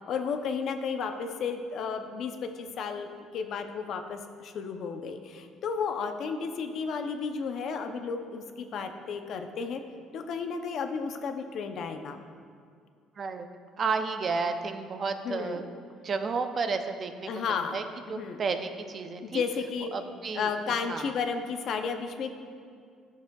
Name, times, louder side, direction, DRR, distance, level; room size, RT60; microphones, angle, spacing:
voice 1, 0.1-9.8 10.1-12.2 15.2-15.6 17.3-17.8 18.1-18.4 19.2-19.9 20.3-22.3, left 5 dB, 55° left, 6 dB, 0.6 m, -33 dB
voice 2, 13.2-13.5 13.8-15.7 16.0-17.8 18.1-19.4 19.9-20.5 20.9-21.1, right 4 dB, 35° right, 8 dB, 0.4 m, -32 dB
13.0 x 6.7 x 2.3 m, 2.2 s
cardioid pair, 130°, 0 cm